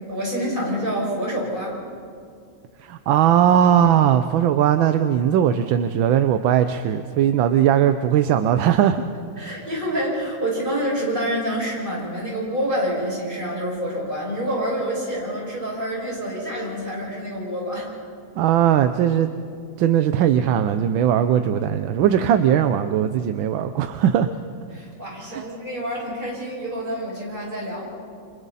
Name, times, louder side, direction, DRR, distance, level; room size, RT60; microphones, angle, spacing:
voice 1, 0.1-1.8 9.4-17.9 24.7-27.9, equal, 25° right, -4 dB, 6.4 m, -27 dB
voice 2, 2.9-9.0 18.4-19.3 19.8-24.3 25.3-25.4, right 10 dB, 85° right, 9 dB, 1.5 m, -19 dB
28.5 x 26.5 x 4.1 m, 2.3 s
omnidirectional pair, 2.1 m